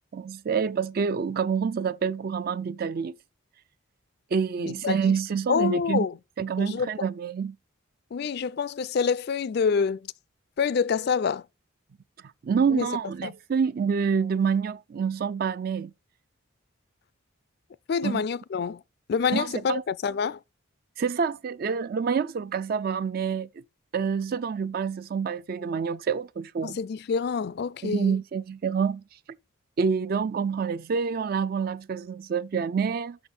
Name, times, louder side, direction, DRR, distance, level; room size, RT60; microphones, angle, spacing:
voice 1, 0.1-3.1 4.3-6.1 6.4-7.6 12.4-15.9 18.0-18.2 19.3-19.8 21.0-23.5 23.9-26.8 27.8-29.0 29.8-33.2, right 6 dB, 45° right, 0.3 m, -27 dB
voice 2, 4.6-5.1 5.5-6.1 6.6-6.9 8.1-10.0 10.6-11.4 12.7-12.9 13.2-13.3 17.9-18.8 19.1-20.4 26.6-28.2, left 6 dB, 50° left, 0.3 m, -27 dB
6.1 x 6.0 x 5.6 m
head